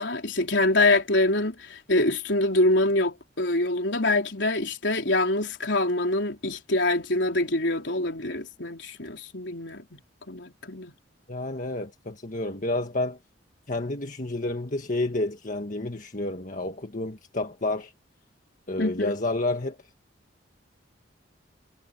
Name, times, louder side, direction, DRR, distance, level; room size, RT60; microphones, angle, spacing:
voice 1, 0.0-10.0 10.3-10.9 18.8-19.2, left 2 dB, 70° left, 4.1 m, -25 dB
voice 2, 11.3-13.2 13.7-17.9 18.7-19.8, left 2 dB, 45° left, 1.7 m, -30 dB
head